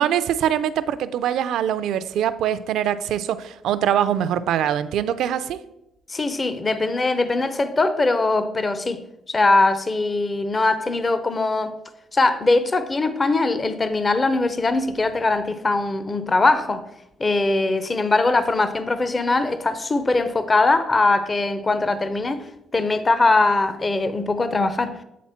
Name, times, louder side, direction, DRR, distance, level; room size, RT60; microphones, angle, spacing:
voice 1, 0.0-5.6, right 10 dB, 80° right, 13 dB, 0.4 m, -23 dB
voice 2, 6.1-9.0 9.3-11.8 12.1-16.8 17.2-22.5 22.7-25.0, left 3 dB, 30° left, 11 dB, 0.6 m, -21 dB
8.3 x 4.2 x 4.3 m, 0.86 s
cardioid pair, 90°, 0 cm